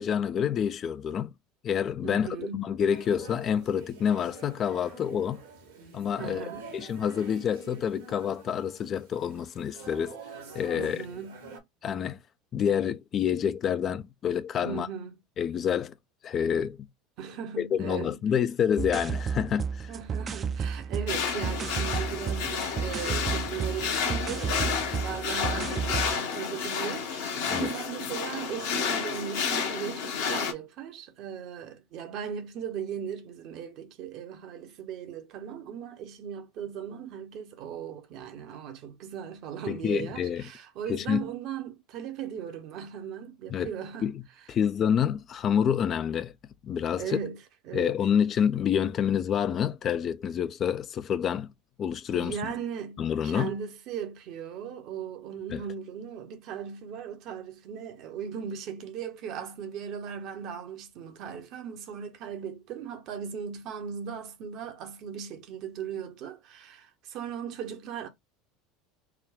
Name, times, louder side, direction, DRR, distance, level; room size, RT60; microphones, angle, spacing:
voice 1, 0.0-1.3 1.6-5.4 5.9-10.2 10.5-11.0 11.8-12.2 12.5-14.9 15.4-15.9 16.2-16.9 17.6-19.9 27.5-27.7 39.7-40.4 40.9-41.3 43.5-43.7 44.0-44.2 44.5-46.3 46.6-47.2 47.7-51.5 51.8-52.4 53.0-53.5 55.5-55.6, left 8 dB, 40° left, 0.3 m, -28 dB
voice 2, 2.0-2.7 6.2-6.8 10.7-11.4 14.6-15.2 17.2-18.2 19.9-44.1 47.0-47.4 47.7-48.0 52.1-68.1, right 8 dB, 55° right, 0.8 m, -38 dB
sound 1, 2.9-11.6, right 4 dB, 75° right, 1.3 m, -46 dB
sound 2, 18.8-26.2, right 6 dB, 30° right, 0.4 m, -32 dB
sound 3, 21.1-30.5, left 6 dB, 70° left, 1.1 m, -31 dB
3.5 x 2.2 x 3.6 m
hypercardioid pair, 75°, 0 cm